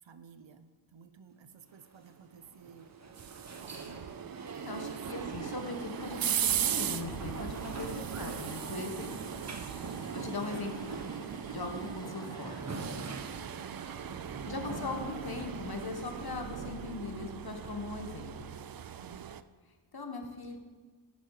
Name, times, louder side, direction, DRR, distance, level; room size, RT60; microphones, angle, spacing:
voice 1, 0.0-2.9 3.6-4.2 4.7-5.0 9.3-10.1 19.0-19.4, right 6 dB, 70° right, 10 dB, 0.9 m, -55 dB
sound 1, 1.7-18.7, right 2 dB, 35° right, 1.4 m, -46 dB
sound 2, 2.8-19.4, right 9 dB, 50° right, 0.5 m, -38 dB
voice 2, 4.6-9.4 10.1-12.7 14.5-18.5 19.9-20.6, left 3 dB, 50° left, 5 dB, 1.7 m, -40 dB
sound 3, 5.0-12.6, left 1 dB, 10° left, 0.6 m, -51 dB
10.5 x 9.3 x 4.9 m, 1.4 s
cardioid pair, 55°, 47 cm